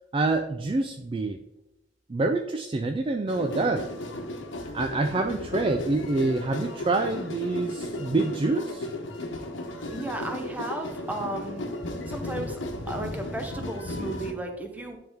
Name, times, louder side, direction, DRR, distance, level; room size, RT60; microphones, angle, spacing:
voice 1, 0.1-1.4 2.1-3.9 4.7-8.9, right 3 dB, 30° right, 5 dB, 0.3 m, -26 dB
sound 1, 3.3-14.3, left 1 dB, 85° left, 1.0 m, -35 dB
voice 2, 9.9-11.7 12.1-12.6 12.9-15.0, right 1 dB, 10° right, 3 dB, 0.9 m, -34 dB
10.5 x 3.5 x 3.6 m, 0.95 s
head